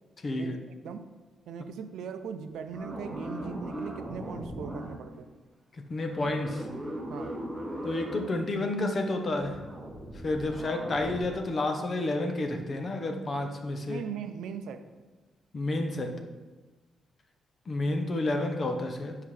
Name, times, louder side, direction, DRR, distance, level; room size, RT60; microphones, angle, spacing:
voice 1, 0.2-0.5 5.7-6.7 7.8-9.6 10.2-14.0 15.5-16.2 17.7-19.2, left 2 dB, 35° left, 5 dB, 0.8 m, -30 dB
voice 2, 1.5-5.3 7.1-7.4 13.9-14.9, right 7 dB, 85° right, 9 dB, 0.5 m, -39 dB
sound 1, 2.7-5.1 6.1-8.3 9.4-11.2, right 1 dB, 10° right, 1.6 m, -38 dB
10.0 x 5.7 x 3.2 m, 1.3 s
cardioid pair, 150°, 0 cm